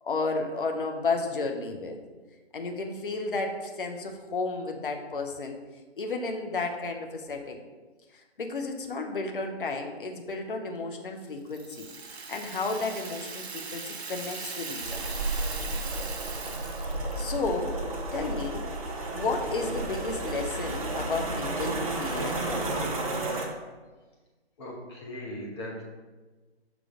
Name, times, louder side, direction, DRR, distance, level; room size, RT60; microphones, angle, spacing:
voice 1, 0.0-2.0 2.5-5.6 6.0-7.6 8.1-11.9 12.3-15.2 17.2-17.7 18.1-18.6 19.1-22.7, left 3 dB, 50° left, 4 dB, 0.8 m, -32 dB
Rattle (instrument), 11.5-17.5, right 4 dB, 70° right, 0.7 m, -39 dB
sound 1, 14.8-23.5, right 2 dB, 35° right, 0.7 m, -32 dB
voice 2, 24.6-25.8, left 1 dB, 25° left, -2 dB, 1.0 m, -39 dB
6.0 x 3.1 x 5.0 m, 1.3 s
figure-of-eight pair, 145°, 33 cm